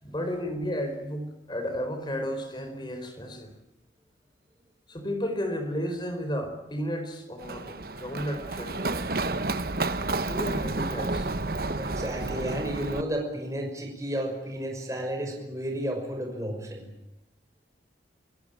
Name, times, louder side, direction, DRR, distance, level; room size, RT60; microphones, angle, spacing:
voice 1, 0.0-3.5 4.9-9.0 10.3-11.3, equal, 25° left, 7 dB, 4.5 m, -33 dB
Run, 7.4-13.0, right 2 dB, 55° right, 1.1 m, -30 dB
voice 2, 11.8-16.9, right 1 dB, 15° right, 2 dB, 5.8 m, -32 dB
29.0 x 16.5 x 9.2 m, 0.96 s
head